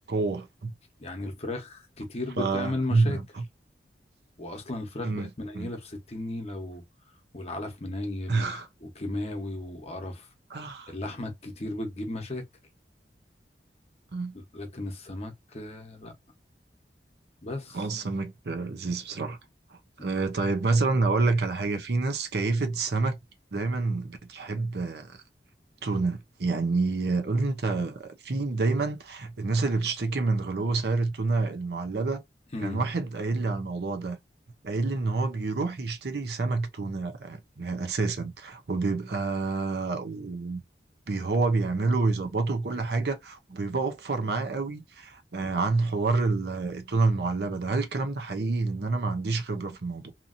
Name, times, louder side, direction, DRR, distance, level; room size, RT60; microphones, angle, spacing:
voice 1, 0.1-0.7 2.4-3.2 5.0-5.7 8.3-8.7 10.5-10.9 14.1-14.3 17.7-19.4 19.7-23.2 23.5-25.2 25.8-32.2 32.6-34.2 34.6-40.6 41.1-50.1, right 3 dB, 65° right, 0.6 m, -28 dB
voice 2, 1.0-3.2 4.4-6.8 7.3-8.5 8.8-10.3 10.9-12.4 14.3-16.1 17.4-17.8 32.5-32.8 45.4-45.6, left 2 dB, 35° left, 0.9 m, -35 dB
2.8 x 2.6 x 2.5 m
head